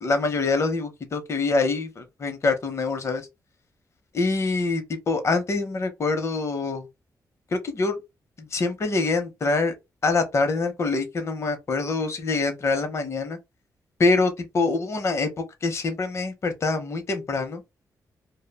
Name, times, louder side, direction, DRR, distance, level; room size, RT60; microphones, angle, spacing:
voice 1, 0.0-3.2 4.1-6.9 7.5-8.0 8.4-9.7 10.0-13.4 14.0-15.3 15.6-17.6, left 3 dB, 40° left, 0.7 m, -25 dB
2.3 x 2.1 x 3.3 m
cardioid pair, 120°, 7 cm